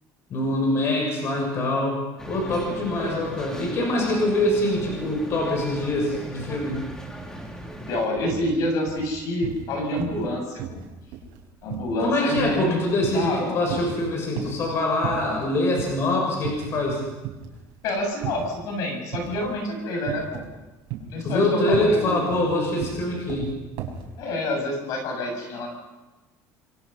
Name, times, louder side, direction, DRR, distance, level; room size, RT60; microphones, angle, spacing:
voice 1, 0.3-2.0 2.3-6.8 12.0-17.0 21.2-23.5, left 1 dB, 40° left, 0 dB, 6.6 m, -24 dB
sound 1, 2.2-8.1, equal, 10° left, 2.6 m, -39 dB
sound 2, 7.3-7.5 7.8-8.5 8.9-9.7 10.0-10.3 10.6-13.4 13.7-14.7 15.0-15.5 15.8-16.0 16.4-17.0 17.2-18.6 19.1-19.5 20.1-20.5 20.9-24.1, right 9 dB, 75° right, 5.5 m, -34 dB
voice 2, 7.8-10.8 11.6-13.6 17.8-20.4 21.1-22.3 24.2-25.7, left 1 dB, 55° left, 3 dB, 7.3 m, -28 dB
27.5 x 23.0 x 5.7 m, 1.1 s
cardioid pair, 165°, 7 cm